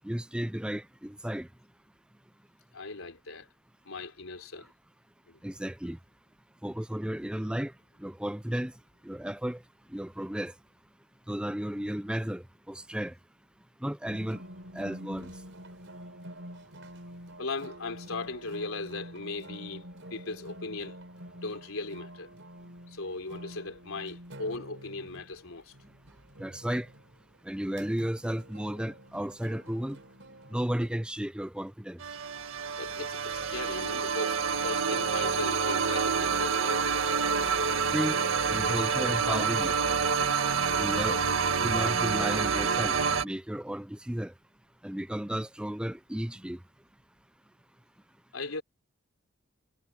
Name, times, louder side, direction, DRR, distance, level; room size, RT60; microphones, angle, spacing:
voice 1, 0.0-1.5 5.4-6.0 6.6-7.7 8.0-8.7 9.0-9.6 9.9-10.5 11.3-13.1 13.8-14.4 14.7-15.3 26.4-26.9 27.5-30.0 30.5-32.0 37.9-38.2 38.5-39.7 40.8-41.2 41.6-44.3 44.8-46.6, equal, 5° right, 0.4 m, -33 dB
voice 2, 2.7-3.5 3.9-4.7 5.3-5.4 17.4-21.0 21.4-22.3 22.9-25.7 32.8-37.0 48.3-48.6, left 3 dB, 85° left, 3.6 m, -38 dB
sound 1, 14.1-30.9, equal, 65° right, 5.0 m, -47 dB
sound 2, 32.0-43.2, right 5 dB, 80° right, 1.7 m, -28 dB
head